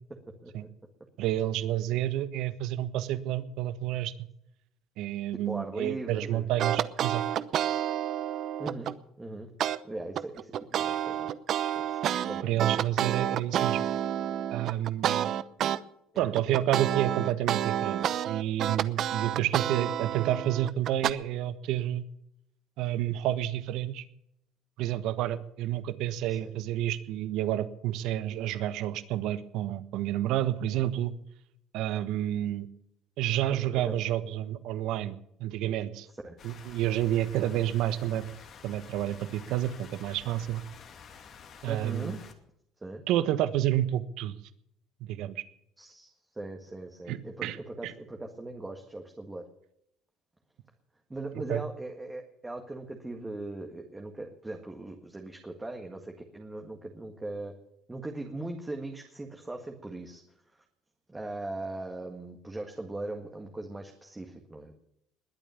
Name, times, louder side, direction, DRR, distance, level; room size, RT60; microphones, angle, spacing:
voice 1, 1.2-4.1 5.0-7.2 12.4-13.8 14.5-15.3 16.2-22.0 22.8-24.0 24.8-31.1 31.7-32.7 33.2-35.1 35.4-36.1 36.4-38.2 38.6-40.6 41.6-42.2 43.1-44.3 45.0-45.4 47.1-47.6 47.8-47.9 51.5-51.6, right 12 dB, 70° right, 13 dB, 1.2 m, -29 dB
voice 2, 5.5-6.5 8.6-9.5 9.8-11.3 11.8-12.0 12.3-12.7 16.1-16.3 26.3-26.5 33.8-34.0 36.2-36.4 41.7-42.2 42.8-43.0 45.8-49.4 51.1-57.5 57.9-60.2 60.5-60.6 61.1-64.8, right 2 dB, 10° right, 3 dB, 1.8 m, -39 dB
sound 1, 6.6-9.0 9.6-9.8 10.2-15.8 16.2-21.1, right 10 dB, 50° right, 0.8 m, -29 dB
sound 2, 36.4-42.3, left 6 dB, 45° left, 2.3 m, -50 dB
20.5 x 8.8 x 7.1 m, 0.75 s
cardioid pair, 125°, 0 cm